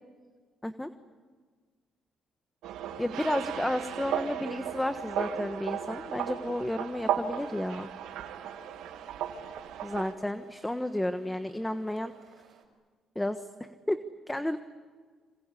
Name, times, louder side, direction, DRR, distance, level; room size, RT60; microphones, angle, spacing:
sound 1, 2.6-10.1, right 9 dB, 90° right, 2.1 m, -35 dB
voice 1, 3.0-7.9 9.8-12.1 13.1-13.4 13.9-14.0 14.3-14.6, left 1 dB, 10° left, 9 dB, 1.3 m, -32 dB
sound 2, 7.4-12.6, right 6 dB, 75° right, 4.7 m, -54 dB
27.0 x 26.0 x 8.4 m, 1.5 s
cardioid pair, 90°, 0 cm